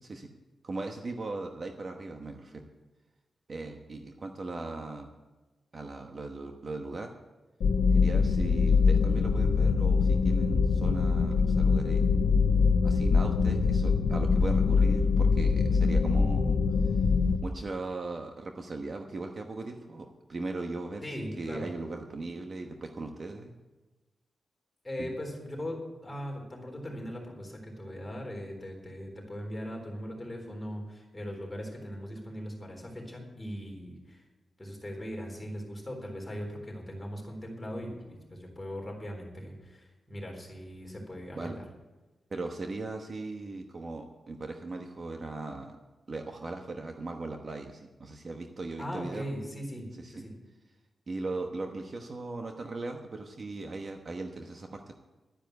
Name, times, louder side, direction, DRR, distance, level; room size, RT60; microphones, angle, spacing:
voice 1, 0.6-2.7 3.5-5.1 5.7-7.1 7.9-12.1 12.8-16.6 17.4-21.0 21.4-23.5 25.0-25.1 41.4-41.6 42.3-45.8 46.1-49.2 50.0-50.1 51.1-54.9, right 3 dB, 35° right, 4 dB, 1.1 m, -38 dB
sound 1, 7.6-17.4, left 5 dB, 90° left, 0.9 m, -24 dB
voice 2, 21.0-21.7 24.8-34.2 34.6-41.6 48.8-50.3, equal, 15° left, 0 dB, 3.8 m, -39 dB
12.0 x 10.0 x 8.0 m, 1.1 s
wide cardioid pair, 150°, 0 cm